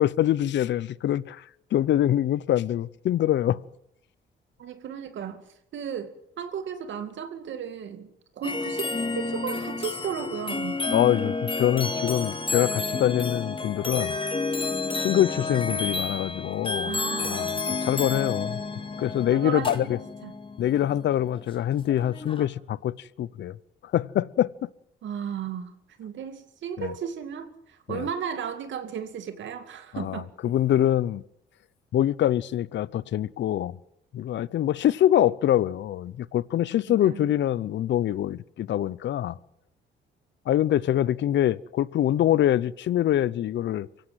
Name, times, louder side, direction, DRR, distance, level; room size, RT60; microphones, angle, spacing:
voice 1, 0.0-1.4 1.7-3.6 10.9-14.1 15.0-16.9 17.2-17.5 17.8-18.6 19.0-20.0 20.6-23.6 23.9-24.7 26.8-26.9 27.9-28.1 29.9-31.2 31.9-33.8 34.1-39.3 40.5-43.9, left 12 dB, 65° left, 0.7 m, -24 dB
voice 2, 4.6-5.4 5.7-8.1 8.4-10.8 16.9-17.5 19.3-20.3 25.0-30.3 36.9-37.3, right 8 dB, 70° right, 2.4 m, -35 dB
sound 1, 8.4-22.5, left 3 dB, 25° left, 2.2 m, -31 dB
24.0 x 16.5 x 7.7 m
cardioid pair, 90°, 20 cm